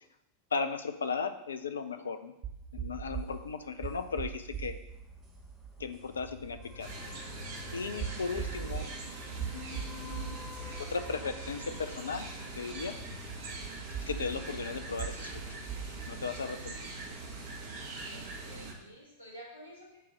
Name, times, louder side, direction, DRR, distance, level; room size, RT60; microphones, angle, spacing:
voice 1, 0.5-2.3 2.7-4.8 5.8-6.9 7.7-8.9 9.5-10.4 10.8-12.2 12.6-12.9 14.0-15.3 16.1-16.7, left 5 dB, 70° left, 9 dB, 0.5 m, -36 dB
sound 1, 2.4-16.4, right 8 dB, 40° right, 1.3 m, -42 dB
sound 2, 4.9-14.5, left 5 dB, 20° left, 1.1 m, -50 dB
sound 3, 6.8-18.7, right 3 dB, 60° right, 1.5 m, -42 dB
voice 2, 18.0-20.0, equal, 85° right, -12 dB, 2.8 m, -51 dB
8.2 x 3.0 x 6.2 m, 0.87 s
figure-of-eight pair, 90°, 0 cm